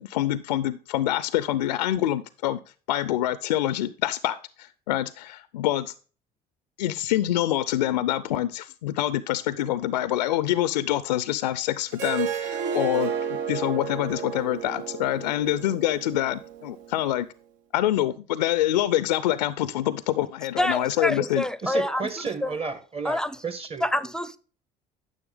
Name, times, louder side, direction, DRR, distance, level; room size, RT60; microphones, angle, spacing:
voice 1, 0.0-2.6 2.9-5.9 6.8-17.3 17.7-21.4, left 13 dB, 85° left, 0.4 m, -26 dB
Harp, 11.9-17.1, right 7 dB, 65° right, 0.9 m, -32 dB
voice 2, 20.6-22.0 22.4-22.5 23.0-23.4 23.8-24.4, left 1 dB, 5° left, 0.6 m, -26 dB
voice 3, 21.6-23.9, right 4 dB, 30° right, 1.5 m, -32 dB
9.8 x 6.7 x 3.5 m
hypercardioid pair, 65°, 21 cm